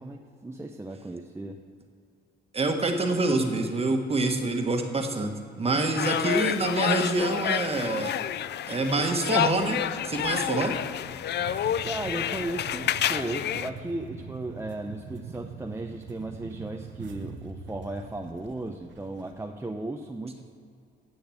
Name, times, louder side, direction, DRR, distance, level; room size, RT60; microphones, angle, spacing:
voice 1, 0.0-1.6 11.8-20.5, right 2 dB, 15° right, 3 dB, 0.7 m, -36 dB
voice 2, 2.5-5.3 5.6-8.1 8.7-9.8 10.0-10.7, right 2 dB, 30° right, 4 dB, 1.4 m, -26 dB
sound 1, 6.0-13.7, left 10 dB, 60° left, 0.5 m, -29 dB
sound 2, 9.1-19.4, right 5 dB, 70° right, 1.1 m, -44 dB
10.5 x 7.2 x 7.7 m, 2.4 s
cardioid pair, 90°, 20 cm